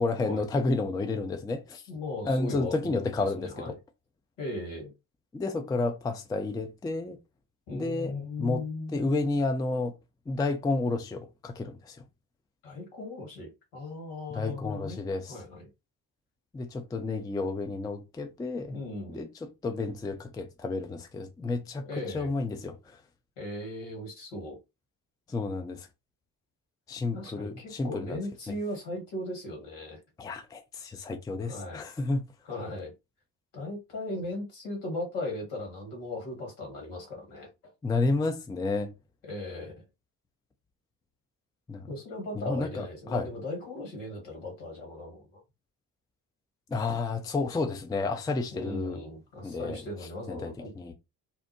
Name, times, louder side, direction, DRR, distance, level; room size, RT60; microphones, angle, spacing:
voice 1, 0.0-1.8 2.2-3.8 5.3-7.2 7.7-8.6 8.9-9.9 10.3-12.0 14.3-15.4 16.5-18.8 19.1-21.9 22.1-23.0 25.3-25.9 26.9-28.2 30.2-32.3 37.8-38.9 41.7-41.9 42.4-42.8 43.1-43.3 46.7-49.0 49.4-49.8 50.3-50.9, left 3 dB, 10° left, 0.4 m, -31 dB
voice 2, 1.9-3.7 4.4-4.9 7.7-9.0 12.6-15.0 15.3-15.7 18.7-19.3 21.8-22.3 23.4-24.6 27.1-30.0 31.5-31.8 32.4-32.9 33.5-37.7 39.2-39.8 41.9-45.4 48.5-50.9, left 2 dB, 70° left, 1.6 m, -38 dB
2.7 x 2.0 x 2.9 m
figure-of-eight pair, 40°, 50 cm